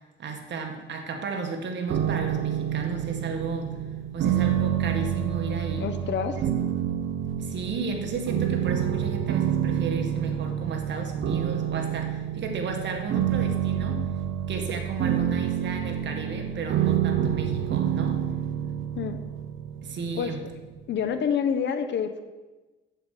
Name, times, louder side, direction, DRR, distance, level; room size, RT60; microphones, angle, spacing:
voice 1, 0.2-3.8 4.1-5.9 6.4-6.5 7.4-14.0 14.5-18.2 19.8-20.4, right 4 dB, 65° right, 3 dB, 1.8 m, -33 dB
sound 1, 1.9-20.9, right 10 dB, 80° right, 0.8 m, -28 dB
voice 2, 5.8-6.4 18.9-19.2 20.1-20.3 20.9-22.2, left 7 dB, 65° left, 8 dB, 1.0 m, -27 dB
8.0 x 7.7 x 6.5 m, 1.2 s
cardioid pair, 90°, 20 cm